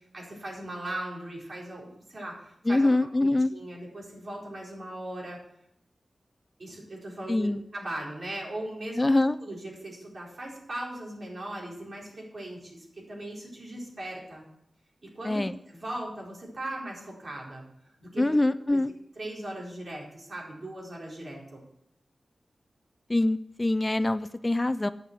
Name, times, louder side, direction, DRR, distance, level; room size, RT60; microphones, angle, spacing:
voice 1, 0.0-5.4 6.6-14.4 15.1-18.3 18.7-18.8 19.2-21.6, right 1 dB, 55° right, -3 dB, 4.4 m, -39 dB
voice 2, 2.7-3.5 7.3-7.6 9.0-9.3 15.3-15.5 18.2-18.9 23.1-24.9, left 2 dB, 25° left, 14 dB, 0.4 m, -24 dB
9.4 x 7.2 x 7.4 m, 0.77 s
cardioid pair, 55°, 0 cm